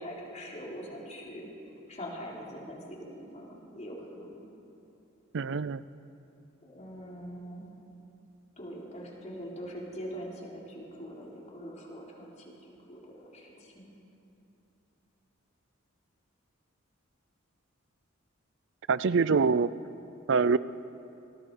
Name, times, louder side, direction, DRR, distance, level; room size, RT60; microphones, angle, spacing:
voice 1, 0.0-1.5 1.9-4.4 6.6-7.6 8.6-12.0 12.9-13.9, equal, 35° left, -3 dB, 4.0 m, -42 dB
voice 2, 5.3-5.8 18.9-19.7 20.3-20.6, right 5 dB, 60° right, 17 dB, 0.5 m, -24 dB
27.5 x 20.5 x 4.9 m, 2.8 s
head